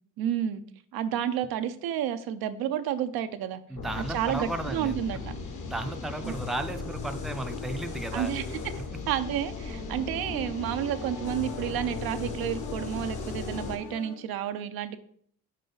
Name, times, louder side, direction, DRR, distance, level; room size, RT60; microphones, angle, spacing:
voice 1, 0.2-0.6 0.9-3.6 4.0-5.3 6.2-6.3 8.1-8.4 9.1-15.0, right 10 dB, 80° right, 10 dB, 0.6 m, -30 dB
voice 2, 3.7-5.0 5.6-8.3, right 2 dB, ahead, 7 dB, 0.5 m, -34 dB
sound 1, 3.8-13.8, left 4 dB, 55° left, 1.2 m, -37 dB
sound 2, 9.1-14.1, left 4 dB, 75° left, 1.2 m, -42 dB
5.4 x 4.9 x 3.8 m, 0.62 s
cardioid pair, 80°, 36 cm